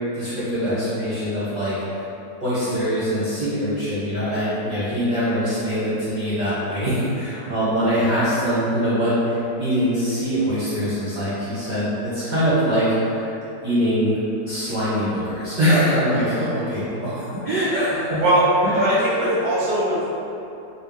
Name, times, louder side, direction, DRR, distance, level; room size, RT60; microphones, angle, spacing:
voice 1, 0.1-2.0 2.4-13.3 13.6-14.2 14.4-18.2 18.6-19.0, equal, 45° right, -12 dB, 0.6 m, -23 dB
voice 2, 18.2-20.1, right 1 dB, 90° right, -6 dB, 1.5 m, -20 dB
4.3 x 2.0 x 3.4 m, 2.9 s
omnidirectional pair, 1.9 m